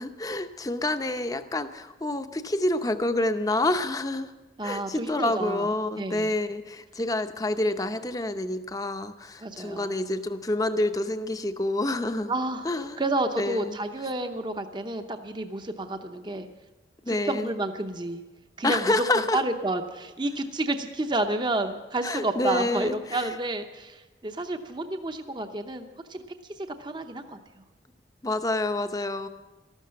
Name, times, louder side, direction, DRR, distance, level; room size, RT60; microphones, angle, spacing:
voice 1, 0.0-4.3 4.6-12.3 12.6-13.0 13.4-13.8 17.0-17.5 18.6-19.4 22.0-23.4 28.2-29.3, left 2 dB, 20° left, 9 dB, 0.7 m, -28 dB
voice 2, 4.6-5.7 5.9-6.3 9.4-10.0 12.3-12.6 13.0-16.5 17.1-18.2 18.6-18.9 19.3-26.2 26.6-27.6, right 2 dB, 25° right, 7 dB, 0.7 m, -30 dB
13.5 x 12.5 x 7.5 m, 1.2 s
head